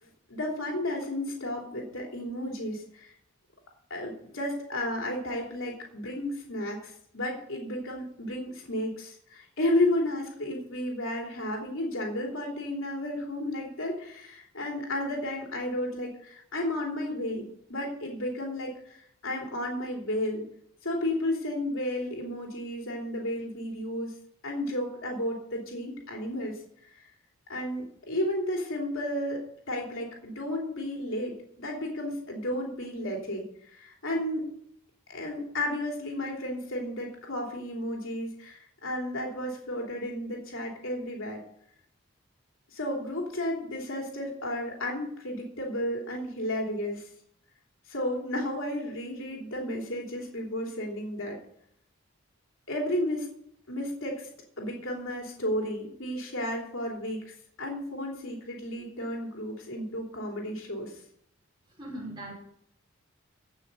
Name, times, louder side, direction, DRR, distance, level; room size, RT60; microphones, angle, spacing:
voice 1, 0.0-3.2 3.9-20.5 20.8-24.1 24.4-26.6 26.9-27.0 27.5-34.5 35.1-41.4 42.7-47.1 47.9-51.4 52.7-53.3 53.7-54.3 54.6-61.0, left 1 dB, 70° left, -1 dB, 3.1 m, -33 dB
voice 2, 61.7-62.3, right 1 dB, 20° right, -3 dB, 5.9 m, -39 dB
16.0 x 6.2 x 6.8 m, 0.70 s
head